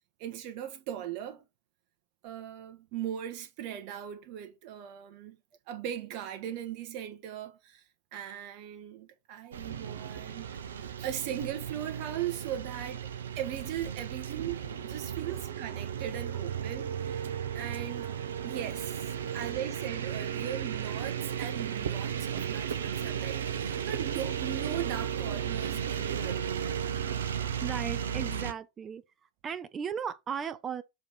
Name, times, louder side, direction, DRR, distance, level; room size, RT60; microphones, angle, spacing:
voice 1, 0.2-1.4 2.2-5.4 5.7-7.8 8.1-10.5 10.8-13.0 13.4-17.1 17.5-18.1 18.4-26.5, right 10 dB, 45° right, 1.1 m, -39 dB
sound 1, 9.5-28.5, right 8 dB, 65° right, 0.7 m, -35 dB
voice 2, 27.6-29.0 29.4-30.8, right 7 dB, 25° right, 0.5 m, -36 dB
6.4 x 3.0 x 5.1 m
figure-of-eight pair, 90°, 0 cm